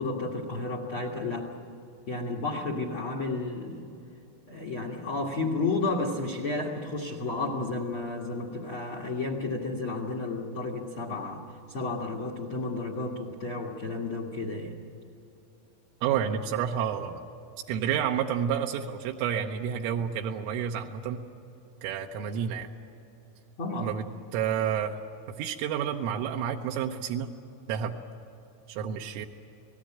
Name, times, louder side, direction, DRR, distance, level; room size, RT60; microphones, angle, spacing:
voice 1, 0.0-1.5 2.1-3.8 4.5-14.8 23.6-23.9, left 3 dB, 75° left, 3 dB, 1.2 m, -32 dB
voice 2, 16.0-17.2 17.7-21.2 21.8-22.7 23.8-24.1 24.3-25.0 25.4-27.3 27.7-27.9 28.7-29.3, right 8 dB, 85° right, 2 dB, 3.6 m, -29 dB
29.5 x 19.0 x 8.8 m, 2.9 s
omnidirectional pair, 5.7 m